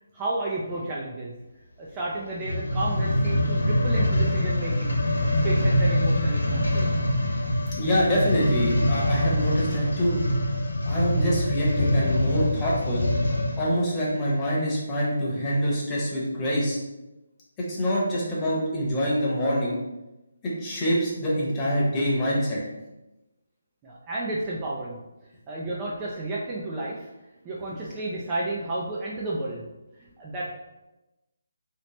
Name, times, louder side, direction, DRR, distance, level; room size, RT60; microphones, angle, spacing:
voice 1, 0.1-1.4 1.8-5.0 5.4-6.9 7.5-7.7 23.8-25.0 25.5-27.1 27.4-29.7 30.0-30.5, right 2 dB, 20° right, -5 dB, 0.4 m, -32 dB
sound 1, 2.3-13.7 14.3-14.4, left 1 dB, 80° left, 0.7 m, -24 dB
voice 2, 7.8-10.2 10.9-13.0 13.6-16.8 17.6-19.7 20.4-22.6, equal, 15° left, -6 dB, 1.0 m, -25 dB
3.0 x 2.8 x 3.1 m, 1.0 s
hypercardioid pair, 160°, 0 cm